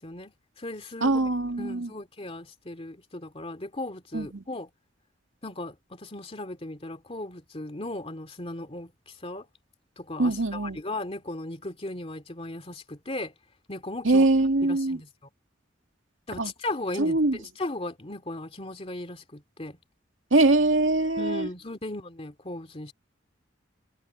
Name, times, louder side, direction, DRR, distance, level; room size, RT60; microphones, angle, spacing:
voice 1, 0.0-1.2 1.6-4.7 5.4-8.9 9.2-9.5 10.0-13.3 13.7-14.3 14.6-15.1 16.3-19.8 21.2-22.9, left 2 dB, 30° left, 2.4 m, -37 dB
voice 2, 1.0-1.9 4.1-4.4 10.2-10.8 14.0-15.0 16.4-16.5 17.0-17.4 20.3-21.5, right 2 dB, 85° right, 2.1 m, -23 dB
head